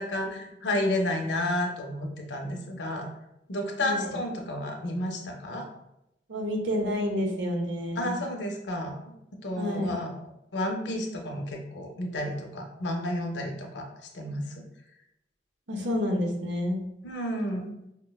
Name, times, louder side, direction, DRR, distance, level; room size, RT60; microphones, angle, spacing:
voice 1, 0.0-3.1 3.5-5.7 8.0-9.0 9.4-10.1 10.5-13.9 14.1-14.6 17.0-17.7, left 1 dB, 80° left, 2 dB, 0.6 m, -31 dB
voice 2, 3.8-4.2 6.3-8.2 9.6-10.0 15.7-16.8, left 1 dB, 90° right, 2 dB, 0.7 m, -29 dB
5.1 x 2.1 x 2.3 m, 0.86 s
head